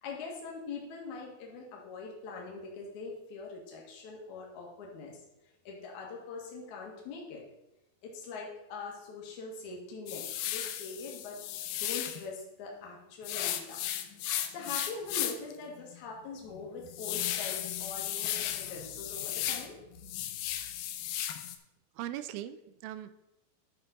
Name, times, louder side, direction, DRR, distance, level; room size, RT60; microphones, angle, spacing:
voice 1, 0.0-5.2 5.6-7.4 8.0-11.4 11.8-13.8 14.5-19.8, left 4 dB, 60° left, -2 dB, 2.8 m, -43 dB
sound 1, 10.1-12.2 13.2-15.5 15.9-16.0 16.5-19.7 20.0-21.6, left 12 dB, 90° left, 2.6 m, -35 dB
voice 2, 22.0-23.1, right 12 dB, 85° right, 12 dB, 2.3 m, -39 dB
11.0 x 6.4 x 3.9 m, 0.91 s
omnidirectional pair, 4.2 m